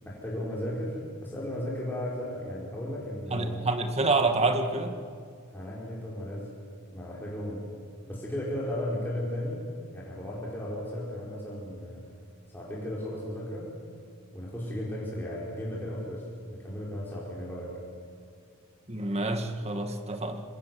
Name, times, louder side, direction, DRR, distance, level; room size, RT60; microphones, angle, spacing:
voice 1, 0.0-3.7 5.5-6.5 6.9-7.7 8.1-9.6 9.9-12.0 12.5-13.7 14.3-16.2 16.5-17.7, left 1 dB, 10° left, -6 dB, 5.3 m, -35 dB
voice 2, 3.3-5.0 18.9-20.4, right 3 dB, 30° right, 6 dB, 2.1 m, -27 dB
27.0 x 26.5 x 7.8 m, 2.4 s
head